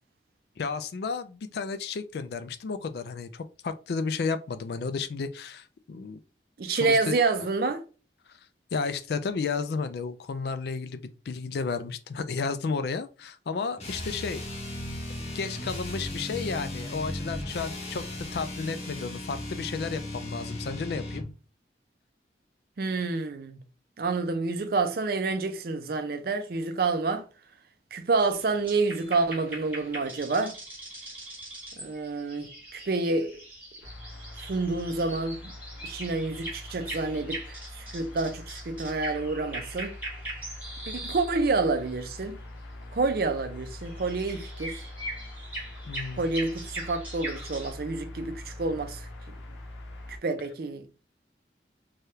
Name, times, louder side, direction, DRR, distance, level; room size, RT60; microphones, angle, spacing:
voice 1, 0.6-6.2 6.7-7.2 8.3-8.4 8.7-14.4 15.2-21.2 45.9-46.3, left 4 dB, 60° left, 0.3 m, -32 dB
voice 2, 6.6-7.8 22.8-23.6 24.0-27.2 27.9-30.6 31.8-33.3 34.4-35.5 35.8-39.9 40.9-42.4 42.9-44.8 46.2-49.0 50.2-50.9, right 3 dB, 55° right, 0.4 m, -28 dB
sound 1, 13.8-21.3, left 1 dB, 35° left, 0.8 m, -36 dB
sound 2, 28.2-41.4 41.7-42.0 43.8-47.7, right 1 dB, 10° right, 1.1 m, -41 dB
sound 3, 33.8-50.2, left 1 dB, 85° left, 0.8 m, -43 dB
3.3 x 2.3 x 2.7 m
head